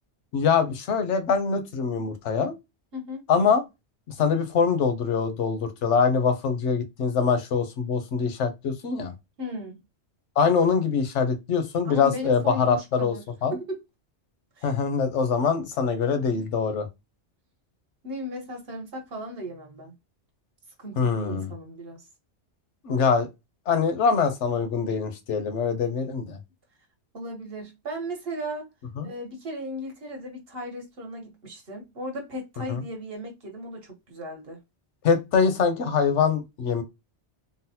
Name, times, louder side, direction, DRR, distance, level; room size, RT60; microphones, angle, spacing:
voice 1, 0.3-2.5 3.3-3.6 4.2-9.1 10.4-13.1 13.4-13.6 14.6-16.9 21.0-21.5 22.8-23.3 23.7-26.4 29.0-29.1 32.7-32.8 35.0-36.8, left 5 dB, 85° left, 1.1 m, -24 dB
voice 2, 2.9-3.3 9.4-9.8 11.8-13.2 13.5-13.8 14.6-14.7 16.3-16.4 18.0-19.9 20.8-22.1 27.1-28.7 29.0-34.6, equal, 60° right, 1.2 m, -36 dB
3.9 x 2.0 x 2.7 m
omnidirectional pair, 1.2 m